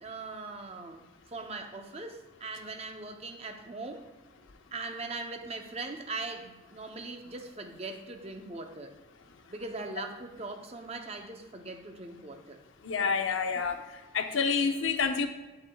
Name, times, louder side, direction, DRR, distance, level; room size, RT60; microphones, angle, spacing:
voice 1, 0.0-4.0 4.7-8.9 9.5-12.6, right 3 dB, 30° right, 4 dB, 0.7 m, -40 dB
voice 2, 12.8-13.8 14.1-15.3, left 5 dB, 80° left, 7 dB, 0.6 m, -28 dB
8.4 x 7.5 x 2.3 m, 1.2 s
head